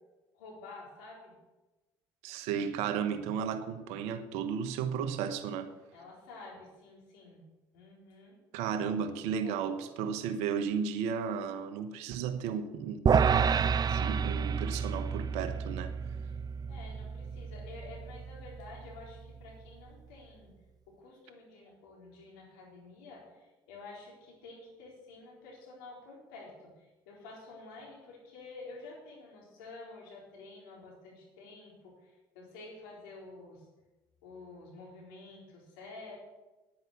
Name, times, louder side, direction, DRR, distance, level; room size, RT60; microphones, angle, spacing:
voice 1, 0.3-1.4 5.9-7.4 7.7-8.4 9.4-9.7 16.2-16.4 16.7-20.5 20.9-33.7 34.2-36.2, left 3 dB, 80° left, 4.1 m, -50 dB
voice 2, 2.2-5.7 8.5-13.0 13.9-15.9, right 7 dB, 75° right, 1.2 m, -34 dB
sound 1, 13.1-19.4, right 6 dB, 35° right, 0.6 m, -30 dB
10.5 x 9.8 x 7.1 m
hypercardioid pair, 60°, 11 cm